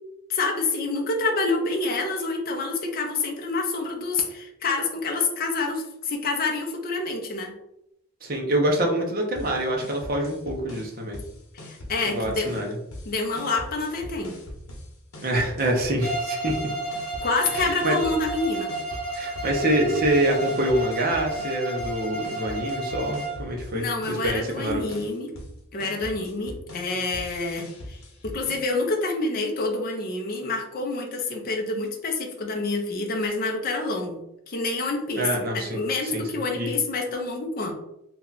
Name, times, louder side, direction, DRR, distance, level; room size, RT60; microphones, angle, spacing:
voice 1, 0.3-7.6 11.6-12.6 13.1-14.4 17.2-18.7 23.7-25.3 25.7-28.0 28.2-34.2 34.5-35.3 35.5-37.7, left 3 dB, 40° left, 1 dB, 0.5 m, -27 dB
voice 2, 8.2-11.2 12.0-12.8 15.2-16.6 17.5-18.0 19.1-24.8 35.2-36.2 36.5-36.7, right 1 dB, 40° right, 1 dB, 0.6 m, -26 dB
sound 1, 9.4-28.6, left 1 dB, 80° left, 0.9 m, -41 dB
Bowed string instrument, 16.0-23.5, right 2 dB, 15° left, 1.0 m, -32 dB
2.8 x 2.2 x 3.8 m, 0.81 s
head